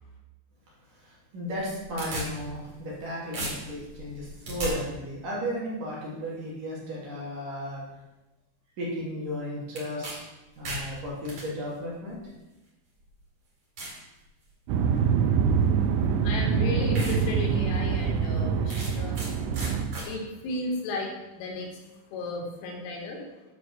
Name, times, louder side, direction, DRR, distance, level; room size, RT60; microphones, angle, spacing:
voice 1, 0.9-7.8 8.8-10.0 10.6-12.2 15.4-15.5, equal, 50° right, -5 dB, 3.7 m, -34 dB
sound 1, 1.5-3.0 3.3-4.7 9.7-10.1 10.5-11.4 12.3-12.4 13.0-13.1 13.8-14.0 14.5-14.9 16.0-16.1 16.5-16.6 16.9-17.2 17.6-17.7 18.7-19.3 19.5-20.1, right 1 dB, 30° right, 3.8 m, -36 dB
sound 2, 14.7-19.8, right 6 dB, 80° right, 3.2 m, -25 dB
voice 2, 16.2-19.4 20.0-21.7 22.1-23.2, left 2 dB, 90° left, 0 dB, 4.6 m, -34 dB
10.5 x 5.6 x 6.7 m, 1.0 s
omnidirectional pair, 5.5 m